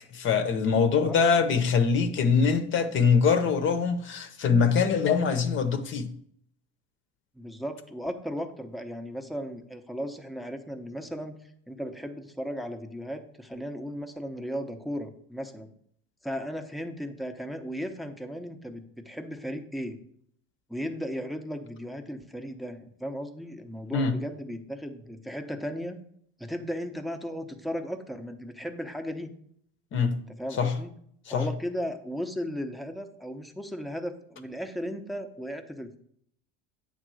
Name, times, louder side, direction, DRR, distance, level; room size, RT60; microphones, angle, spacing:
voice 1, 0.1-6.1 23.9-24.1 29.9-30.2 30.5-30.7 31.3-31.5, left 5 dB, 40° left, 0.7 m, -23 dB
voice 2, 7.3-15.7 16.2-20.0 20.7-26.0 26.4-29.3 30.1-30.9 31.3-36.0, equal, ahead, 0.7 m, -36 dB
8.9 x 3.7 x 6.2 m
cardioid pair, 145°, 30 cm